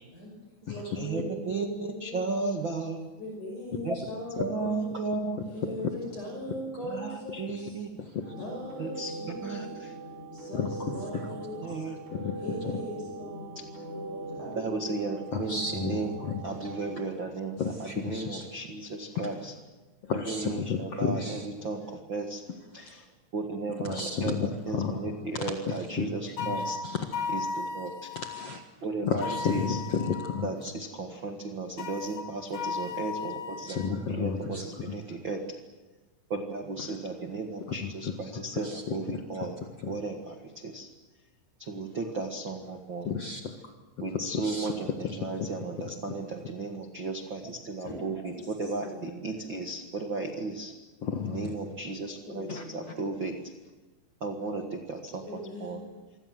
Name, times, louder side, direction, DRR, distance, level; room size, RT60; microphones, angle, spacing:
voice 1, 0.1-2.4 3.2-5.0 5.5-7.8 8.4-9.8 10.3-11.9 12.4-15.5 15.8-16.2 47.8-47.9 48.3-49.2 52.2-52.8 55.2-55.8, left 1 dB, 40° left, 0 dB, 7.4 m, -41 dB
voice 2, 0.9-3.0 3.8-4.0 4.4-5.7 6.8-7.9 8.8-10.0 11.6-12.0 14.5-16.1 16.4-19.5 20.1-22.4 22.7-26.8 27.3-28.1 28.8-29.8 30.4-35.6 36.3-39.6 39.8-40.9 41.6-43.1 44.0-50.7 51.2-53.5 54.2-55.8, right 3 dB, 85° right, 4 dB, 1.0 m, -35 dB
sound 1, 8.2-17.0, right 2 dB, 15° right, 5.5 m, -41 dB
voice 3, 10.5-11.2 12.1-12.4 12.6-12.8 15.3-16.3 17.6-18.4 20.0-21.4 23.8-25.0 26.0-26.1 26.8-27.0 28.3-28.6 29.0-30.7 33.7-34.6 38.6-38.9 43.0-43.7 44.3-44.7 51.0-51.5 52.5-52.6, left 5 dB, 65° left, 4 dB, 1.5 m, -32 dB
sound 2, 26.4-28.5 29.2-30.5 31.8-34.0, left 4 dB, 80° left, 1.4 m, -35 dB
27.0 x 25.0 x 7.7 m, 1.2 s
omnidirectional pair, 5.5 m